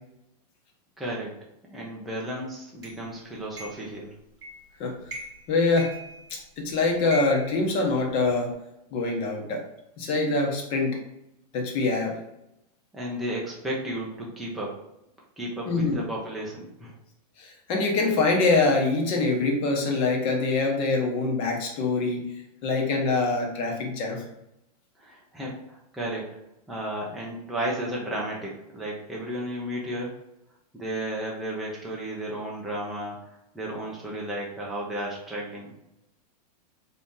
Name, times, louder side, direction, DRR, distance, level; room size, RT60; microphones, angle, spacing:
voice 1, 1.0-1.3 1.7-4.1 12.9-14.8 15.4-16.9 25.0-26.3 26.7-30.2 30.7-33.3 33.5-35.7, right 1 dB, ahead, -5 dB, 0.5 m, -33 dB
sound 1, 2.8-3.0 3.6-3.9 4.4-4.7 5.1-5.5 5.8-6.6 7.1-8.4, equal, 20° right, 1.2 m, -39 dB
voice 2, 5.5-5.9 6.3-8.5 8.9-9.6 10.0-11.0 11.5-12.1 15.7-16.0 17.4-22.2 22.6-24.2, left 3 dB, 25° left, 1 dB, 0.9 m, -24 dB
4.3 x 2.8 x 3.6 m, 0.84 s
supercardioid pair, 165°, 21 cm